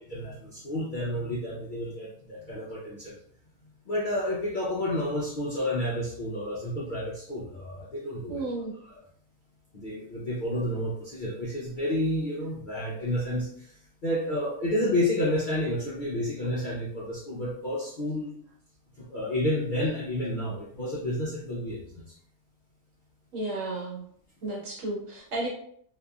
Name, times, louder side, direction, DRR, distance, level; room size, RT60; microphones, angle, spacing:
voice 1, 0.1-3.2 3.9-8.4 9.7-13.8 14.0-18.3 19.0-22.0, left 1 dB, 55° left, -6 dB, 0.5 m, -30 dB
voice 2, 8.3-8.7 23.3-24.0 24.4-25.5, right 2 dB, 65° right, -3 dB, 1.2 m, -33 dB
2.8 x 2.4 x 2.3 m, 0.62 s
omnidirectional pair, 1.4 m